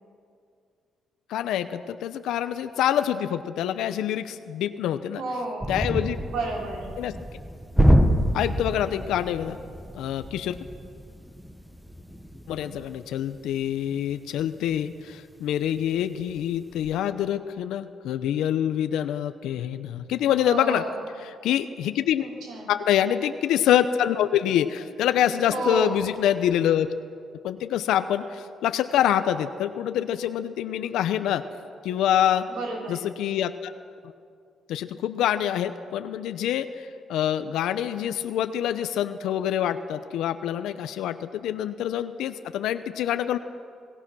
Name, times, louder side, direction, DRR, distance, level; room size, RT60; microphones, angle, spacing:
voice 1, 1.3-5.2 5.7-6.2 7.0-7.2 8.3-9.6 9.9-10.6 12.5-20.8 21.2-22.3 22.7-26.9 27.4-31.4 31.8-32.5 32.9-33.7 34.7-43.4, left 10 dB, 85° left, 10 dB, 0.7 m, -26 dB
voice 2, 5.1-5.8 6.3-7.0 20.4-21.0 22.2-22.7 25.5-26.0 32.5-33.1, right 2 dB, 80° right, -1 dB, 4.6 m, -31 dB
sound 1, 5.6-15.3 15.7-15.9 16.3-17.0, equal, ahead, 1.4 m, -27 dB
27.0 x 18.0 x 6.2 m, 2.3 s
cardioid pair, 90°, 0 cm